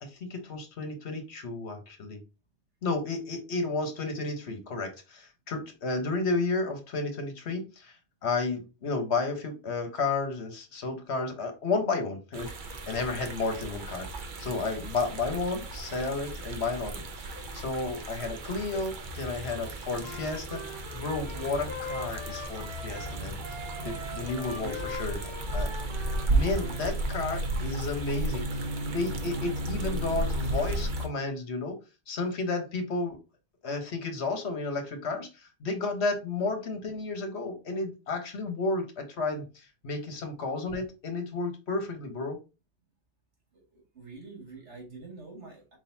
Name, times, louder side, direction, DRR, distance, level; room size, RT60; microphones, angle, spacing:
voice 1, 0.0-2.2 2.8-8.0 8.2-12.5 12.9-20.6 20.9-23.4 23.8-25.2 25.5-25.7 26.3-28.4 28.8-31.8 32.1-33.2 33.6-42.4, left 3 dB, 70° left, 5 dB, 1.3 m, -32 dB
sound 1, 12.3-31.1, right 1 dB, 50° right, 0.8 m, -34 dB
Wind instrument woodwind instrument, 20.0-26.8, left 1 dB, 25° right, 1.3 m, -41 dB
voice 2, 43.5-45.8, right 3 dB, 80° right, 0 dB, 2.3 m, -45 dB
4.7 x 3.9 x 2.7 m, 0.29 s
omnidirectional pair, 1.2 m